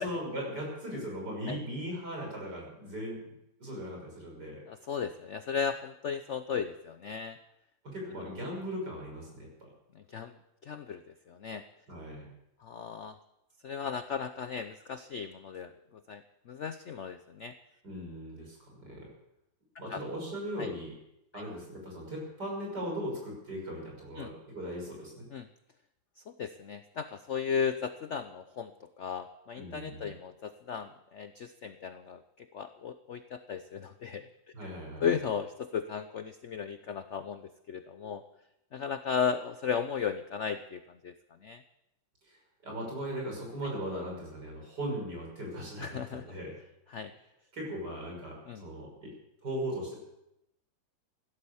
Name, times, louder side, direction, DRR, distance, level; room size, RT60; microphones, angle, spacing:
voice 1, 0.0-3.2 3.6-4.6 7.8-9.7 11.9-12.3 17.8-19.1 19.8-20.9 21.3-25.3 29.6-30.1 34.5-35.1 38.0-38.1 42.2-42.4 42.6-46.5 47.5-49.1 49.4-50.0, equal, 55° right, -1 dB, 6.7 m, -38 dB
voice 2, 4.7-7.4 9.9-10.4 10.6-11.6 12.6-13.2 13.6-17.5 19.9-20.0 20.6-20.7 21.3-21.4 24.2-24.3 25.3-25.5 26.3-28.7 29.0-34.3 35.0-38.2 38.7-41.1 41.4-41.6 45.8-46.3 46.9-47.1 48.5-48.6, left 7 dB, 65° left, 10 dB, 0.7 m, -35 dB
16.0 x 12.0 x 7.0 m, 0.86 s
omnidirectional pair, 2.1 m